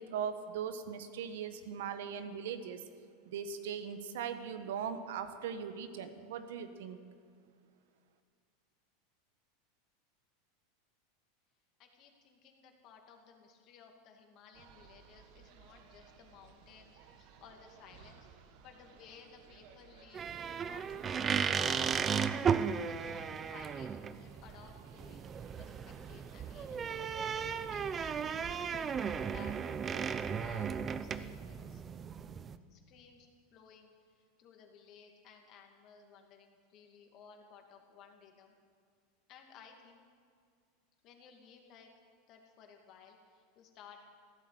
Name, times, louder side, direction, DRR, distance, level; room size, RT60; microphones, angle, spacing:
voice 1, 0.0-2.8 3.2-7.0, right 7 dB, 80° right, 9 dB, 1.3 m, -39 dB
voice 2, 11.8-22.1 22.8-23.9 24.2-25.2 25.6-27.4 27.7-28.4 28.7-31.8 32.7-38.5 39.3-40.0 41.0-41.9 42.3-44.0, left 6 dB, 40° left, 3 dB, 2.4 m, -58 dB
sound 1, 14.5-30.7, right 7 dB, 55° right, 1.4 m, -59 dB
sound 2, 20.1-32.6, right 6 dB, 20° right, 0.5 m, -35 dB
15.0 x 12.5 x 7.8 m, 2.2 s
supercardioid pair, 145°, 0 cm